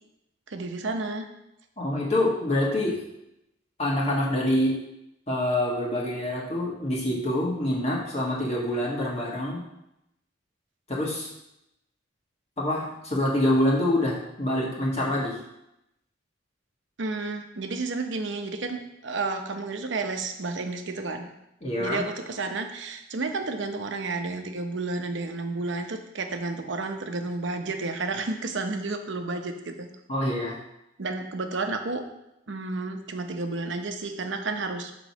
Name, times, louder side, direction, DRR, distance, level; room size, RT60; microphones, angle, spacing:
voice 1, 0.5-1.3 17.0-21.3 21.8-29.9 31.0-32.0 32.5-34.9, right 3 dB, 70° right, 5 dB, 0.8 m, -31 dB
voice 2, 1.8-3.0 3.8-4.7 5.3-9.6 10.9-11.3 12.6-15.3 21.6-22.0 30.1-30.6, left 1 dB, 35° left, -4 dB, 1.6 m, -26 dB
5.9 x 3.9 x 6.0 m, 0.85 s
head